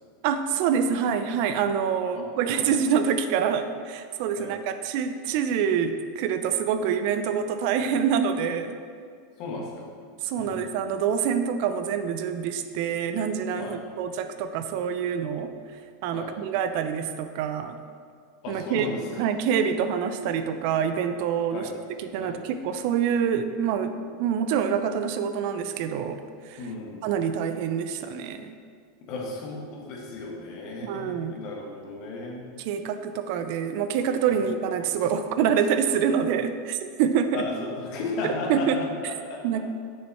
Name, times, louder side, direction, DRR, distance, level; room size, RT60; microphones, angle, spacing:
voice 1, 0.2-8.8 10.2-15.5 16.0-17.8 18.5-18.9 19.2-21.7 22.0-23.9 24.2-26.7 27.0-28.5 30.8-31.4 32.6-37.5 38.5-38.8 39.4-39.6, right 7 dB, 60° right, 9 dB, 0.5 m, -26 dB
voice 2, 9.4-9.8 10.5-10.6 13.6-13.8 16.1-16.3 18.4-19.2 21.5-21.7 22.2-22.4 26.6-27.0 29.0-32.4 34.3-34.4 37.3-39.4, left 3 dB, 55° left, -1 dB, 1.7 m, -35 dB
6.8 x 6.4 x 4.3 m, 2.1 s
hypercardioid pair, 100°, 0 cm